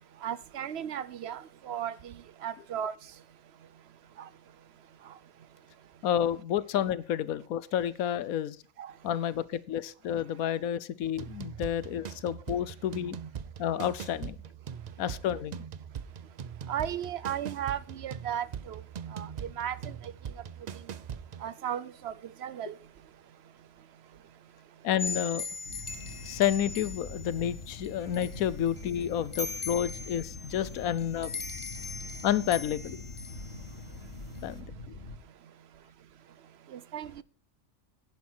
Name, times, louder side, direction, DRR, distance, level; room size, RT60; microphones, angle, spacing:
voice 1, 0.2-2.1 2.4-2.9 8.8-8.9 16.7-18.8 19.1-19.3 19.6-19.9 21.4-22.1 22.4-22.7 36.7-37.2, right 9 dB, 60° right, 0.8 m, -35 dB
voice 2, 6.0-8.6 9.0-13.2 13.6-14.4 15.0-15.6 24.8-25.4 26.2-31.3 32.2-33.0 34.4-34.9, left 10 dB, 85° left, 1.2 m, -30 dB
sound 1, 11.1-21.5, right 8 dB, 75° right, 0.3 m, -41 dB
sound 2, 25.0-34.6, left 4 dB, 25° left, 1.2 m, -40 dB
sound 3, 25.6-35.2, left 2 dB, 55° left, 2.9 m, -44 dB
10.5 x 10.5 x 4.4 m
omnidirectional pair, 1.5 m